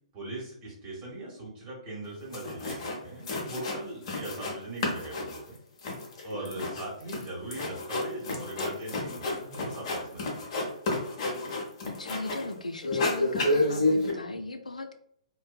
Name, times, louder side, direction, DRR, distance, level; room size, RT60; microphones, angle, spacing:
voice 1, 0.1-5.6 6.2-10.3, right 2 dB, 30° right, -4 dB, 1.1 m, -40 dB
sound 1, 2.0-2.1 2.3-3.0 3.3-4.6 4.8-12.5 12.8-14.1, left 2 dB, 45° left, 0.7 m, -30 dB
voice 2, 11.8-14.9, left 2 dB, 90° left, 6 dB, 0.3 m, -38 dB
2.6 x 2.2 x 2.2 m, 0.67 s
figure-of-eight pair, 120°, 4 cm